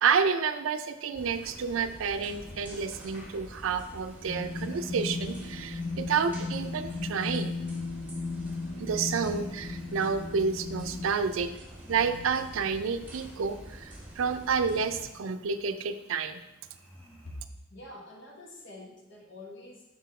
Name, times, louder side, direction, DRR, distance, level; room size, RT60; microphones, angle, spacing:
voice 1, 0.0-7.5 8.8-11.5 11.9-16.4, right 6 dB, 80° right, 10 dB, 0.4 m, -29 dB
sound 1, 0.9-17.4, left 1 dB, 10° left, 1.0 m, -55 dB
sound 2, 1.1-15.0, right 1 dB, 10° right, 1.8 m, -47 dB
sound 3, 4.3-11.1, left 3 dB, 35° left, 0.6 m, -36 dB
voice 2, 17.7-19.8, left 1 dB, 65° left, 0 dB, 1.1 m, -46 dB
6.1 x 4.2 x 4.2 m, 0.92 s
head